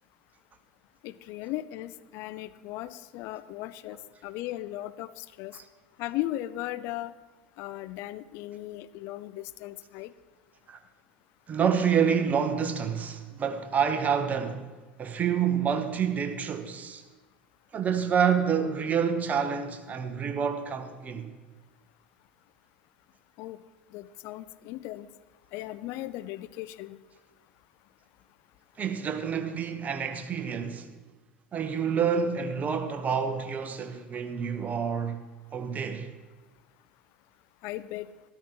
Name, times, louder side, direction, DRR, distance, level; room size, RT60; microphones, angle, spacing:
voice 1, 1.0-4.0 4.2-5.5 6.0-7.1 7.6-10.1 23.4-23.6 23.9-25.1 25.5-27.0 37.6-38.1, left 15 dB, 50° left, 0.5 m, -37 dB
voice 2, 11.5-14.7 15.0-17.0 17.7-21.3 28.8-30.9 31.5-35.2 35.5-36.1, right 7 dB, 30° right, 1.1 m, -28 dB
13.0 x 12.5 x 3.1 m
figure-of-eight pair, 75°, 5 cm